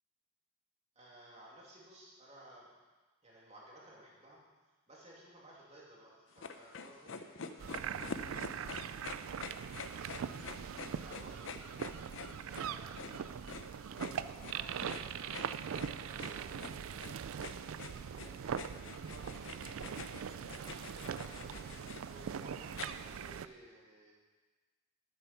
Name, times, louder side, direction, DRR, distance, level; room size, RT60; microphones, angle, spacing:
voice 1, 0.9-2.7 3.2-4.4 4.9-8.2 9.9-11.8 12.3-13.4 13.9-15.5 16.0-17.5 18.1-20.0 20.3-24.1, right 1 dB, 30° right, -4 dB, 2.6 m, -57 dB
sound 1, 6.3-22.8, left 5 dB, 65° left, 0.6 m, -47 dB
sound 2, 7.6-23.5, right 7 dB, 80° right, 0.4 m, -41 dB
9.0 x 8.6 x 5.9 m, 1.3 s
head